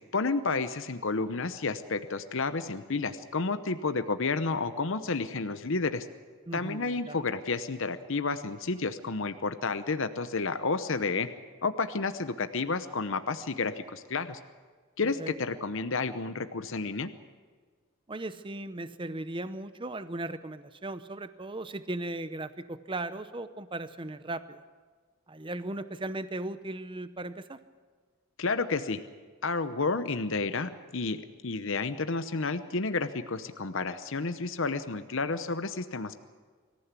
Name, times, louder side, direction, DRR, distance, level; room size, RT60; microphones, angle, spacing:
voice 1, 0.1-6.1 6.5-11.3 11.6-14.4 15.0-17.1 28.4-29.0 29.4-36.2, left 4 dB, 60° left, 10 dB, 0.9 m, -31 dB
voice 2, 6.5-7.2 15.0-15.3 18.1-24.6 25.3-27.6, right 2 dB, 25° right, 12 dB, 0.8 m, -37 dB
24.5 x 15.0 x 8.3 m, 1.5 s
head